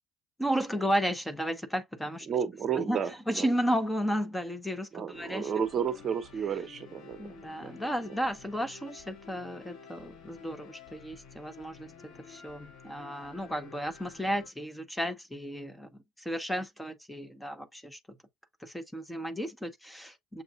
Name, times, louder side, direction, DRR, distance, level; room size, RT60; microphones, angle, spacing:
voice 1, 0.4-2.3 2.8-3.0 3.3-5.5 7.2-15.9 16.2-18.0 18.6-20.4, equal, 5° left, 0.8 m, -33 dB
voice 2, 2.3-3.5 4.9-7.7, right 7 dB, 40° right, 0.8 m, -32 dB
sound 1, 5.1-14.5, left 6 dB, 60° left, 2.2 m, -51 dB
7.0 x 2.4 x 2.4 m
cardioid pair, 115°, 0 cm